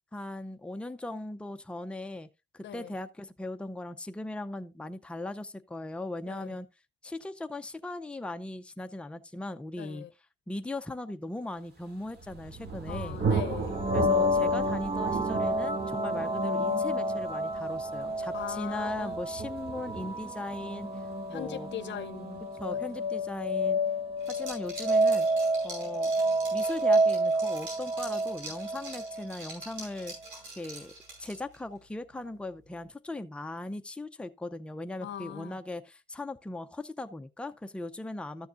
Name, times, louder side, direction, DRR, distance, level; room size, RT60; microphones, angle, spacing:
voice 1, 0.1-2.3 2.5-6.7 7.0-10.0 10.5-13.2 13.9-20.9 21.3-21.7 22.6-23.8 24.3-25.3 25.6-26.1 26.5-30.1 30.6-38.5, left 2 dB, 5° left, 0.6 m, -38 dB
voice 2, 2.6-2.9 6.3-6.5 9.8-10.1 12.9-13.8 18.3-19.2 21.3-22.5 35.0-35.6, left 10 dB, 65° left, 0.7 m, -40 dB
Thunder, 11.9-23.4, right 4 dB, 55° right, 2.6 m, -37 dB
sound 1, 13.7-29.3, equal, 25° right, 1.2 m, -29 dB
Liquid, 24.2-31.6, right 2 dB, 80° right, 5.3 m, -45 dB
13.0 x 7.0 x 2.5 m
cardioid pair, 90°, 20 cm